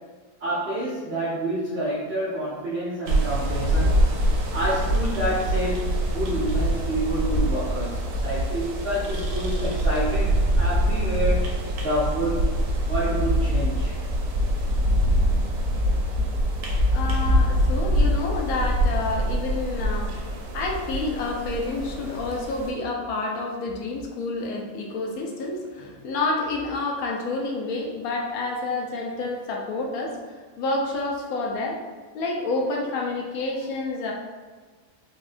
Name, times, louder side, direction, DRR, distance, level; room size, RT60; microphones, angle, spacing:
voice 1, 0.4-4.0 4.5-11.5 11.8-12.5 12.8-14.0, right 1 dB, 60° right, -7 dB, 0.6 m, -28 dB
sound 1, 3.1-22.7, equal, 85° right, 1.2 m, -24 dB
voice 2, 16.5-31.8 32.1-34.1, left 3 dB, 70° left, 0 dB, 0.9 m, -29 dB
4.2 x 2.3 x 2.5 m, 1.4 s
omnidirectional pair, 1.8 m